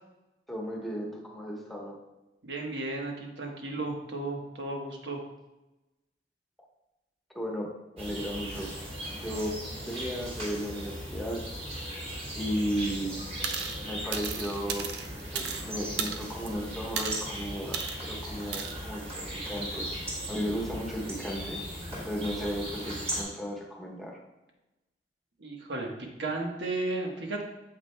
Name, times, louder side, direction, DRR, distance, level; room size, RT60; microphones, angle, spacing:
voice 1, 0.5-2.0 7.3-7.7 7.9-8.7 9.1-11.4 12.3-13.2 13.8-14.9 15.3-19.9 20.3-21.6 22.1-24.2, equal, ahead, -2 dB, 1.1 m, -35 dB
voice 2, 2.4-5.2 25.4-25.9 26.2-27.4, right 2 dB, 90° right, 1 dB, 1.2 m, -34 dB
sound 1, 8.0-23.2, equal, 35° right, 2.3 m, -38 dB
sound 2, 13.4-13.8 14.1-15.6 16.0-16.5 17.0-17.3 17.7-18.0 18.5-18.7, right 6 dB, 70° right, 0.6 m, -34 dB
8.6 x 7.3 x 2.2 m, 1.0 s
head